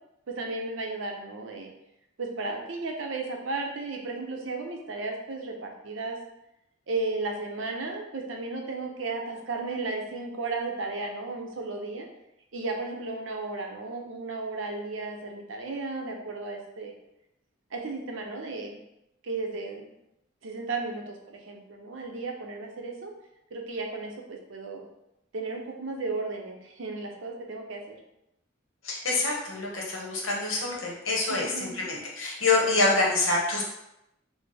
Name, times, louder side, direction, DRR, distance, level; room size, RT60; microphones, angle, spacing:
voice 1, 0.3-1.7 2.2-6.2 6.9-12.1 12.5-16.9 17.7-18.8 19.2-19.9 20.4-23.1 23.5-24.8 25.3-28.0 31.3-31.7, right 3 dB, 70° right, 2 dB, 0.6 m, -34 dB
voice 2, 28.8-33.6, left 3 dB, 80° left, -2 dB, 0.9 m, -26 dB
4.0 x 2.1 x 3.3 m, 0.85 s
head